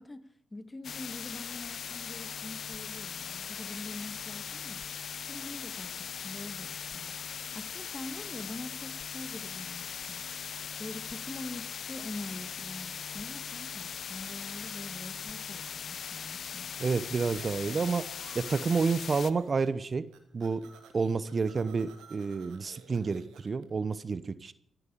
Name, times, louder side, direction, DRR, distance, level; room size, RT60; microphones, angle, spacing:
voice 1, 0.0-4.8 5.2-10.2 10.8-16.6, left 2 dB, 25° left, 11 dB, 1.8 m, -44 dB
sound 1, 0.8-19.3, left 7 dB, 65° left, 0.6 m, -40 dB
voice 2, 16.8-18.1 18.3-20.1 20.3-20.7 20.9-24.5, right 4 dB, 50° right, 16 dB, 0.9 m, -29 dB
sound 2, 17.4-18.9 19.2-19.8 20.1-23.6, right 7 dB, 90° right, 2.0 m, -54 dB
15.5 x 9.1 x 8.6 m, 0.71 s
supercardioid pair, 45°, 0 cm